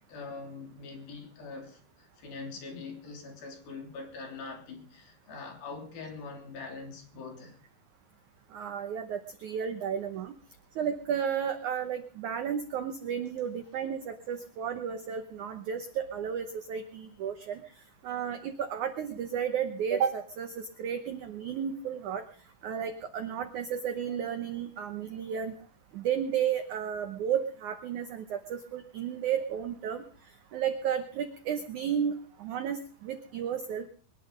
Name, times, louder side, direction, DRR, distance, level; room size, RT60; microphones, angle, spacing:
voice 1, 0.1-7.6, left 4 dB, 60° left, 5.1 m, -43 dB
voice 2, 8.5-10.3 10.8-17.6 18.0-22.2 22.6-25.5 25.9-30.0 30.5-33.9, right 8 dB, 75° right, 1.8 m, -33 dB
23.0 x 10.5 x 5.2 m
omnidirectional pair, 4.8 m